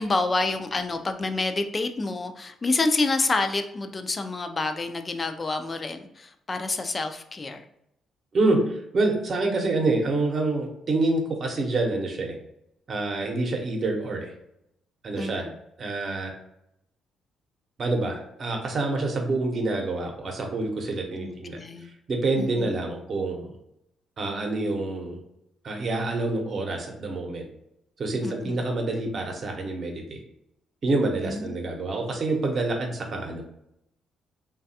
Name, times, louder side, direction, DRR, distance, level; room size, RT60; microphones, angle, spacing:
voice 1, 0.0-7.6 15.2-15.5 21.2-21.9 22.4-22.7 28.2-28.6 31.2-31.6, left 3 dB, 30° left, 7 dB, 0.3 m, -28 dB
voice 2, 8.3-12.3 12.9-14.3 15.0-15.5 15.8-16.3 17.8-23.5 24.2-25.2 25.6-27.5 28.0-30.2 30.8-33.4, right 2 dB, 50° right, 2 dB, 0.7 m, -27 dB
3.2 x 2.3 x 2.7 m, 0.79 s
cardioid pair, 90°, 0 cm